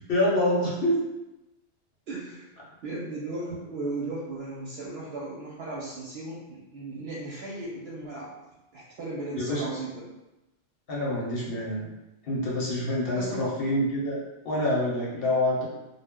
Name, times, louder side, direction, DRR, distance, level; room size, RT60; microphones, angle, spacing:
voice 1, 0.1-1.0 9.3-9.7 10.9-11.9 12.2-15.7, left 1 dB, 55° left, -5 dB, 0.9 m, -26 dB
voice 2, 2.1-8.3 8.7-10.1 13.1-13.5, right 2 dB, 65° right, -6 dB, 0.7 m, -36 dB
2.1 x 2.1 x 3.5 m, 0.97 s
omnidirectional pair, 1.2 m